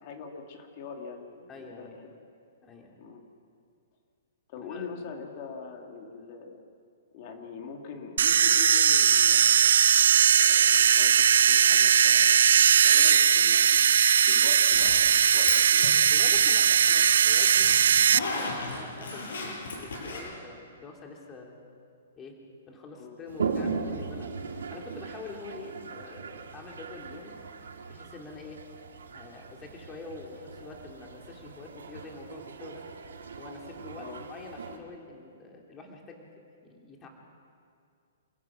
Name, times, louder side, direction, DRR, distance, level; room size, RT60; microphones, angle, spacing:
voice 1, 0.0-2.1 3.0-3.2 4.5-6.6 7.1-9.7 10.3-12.4 12.8-13.8 14.2-16.2 22.9-23.2 34.0-34.2, left 5 dB, 40° left, 2 dB, 3.1 m, -43 dB
voice 2, 1.5-2.0 2.6-3.0 4.6-4.9 16.1-17.8 18.3-21.6 22.2-22.3 22.7-24.3 24.7-27.4 27.9-28.6 29.1-32.8 33.4-37.1, left 3 dB, 20° left, 1 dB, 3.1 m, -45 dB
sound 1, 8.2-18.2, right 8 dB, 75° right, 0.4 m, -20 dB
Zipper (clothing), 14.7-15.6 15.8-20.2, left 3 dB, 75° left, 7.2 m, -35 dB
Toilet flush, 23.3-34.8, right 5 dB, 90° right, 2.6 m, -38 dB
28.0 x 15.5 x 6.1 m, 2.3 s
hypercardioid pair, 145°, 0 cm